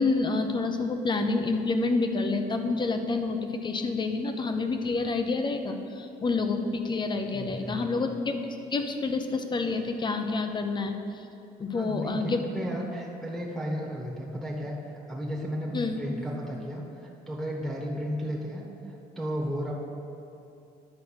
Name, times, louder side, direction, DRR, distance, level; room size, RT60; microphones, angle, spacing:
voice 1, 0.0-11.2 11.6-12.4 15.7-16.0, left 3 dB, 25° left, 6 dB, 0.7 m, -28 dB
voice 2, 7.3-8.0 11.7-19.7, equal, ahead, -5 dB, 1.3 m, -34 dB
10.5 x 4.6 x 6.4 m, 2.7 s
cardioid pair, 110°, 17 cm